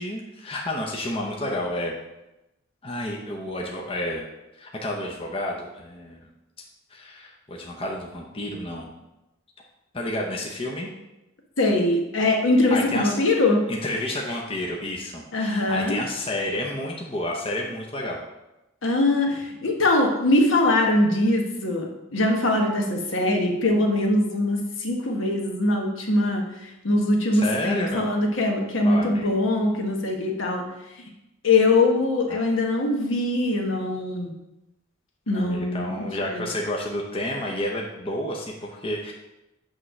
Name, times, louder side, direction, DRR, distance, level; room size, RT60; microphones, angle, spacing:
voice 1, 0.0-2.0 2.8-4.2 4.6-6.3 6.9-8.9 9.9-10.9 12.7-13.2 13.7-18.2 27.3-28.1 28.8-29.3 32.3-32.4 35.3-39.1, left 1 dB, 25° left, -1 dB, 0.8 m, -30 dB
voice 2, 11.6-13.6 15.3-16.0 18.8-30.7 31.4-34.3 35.3-36.5, left 2 dB, 65° left, 1 dB, 1.2 m, -22 dB
8.8 x 3.2 x 6.1 m, 0.96 s
head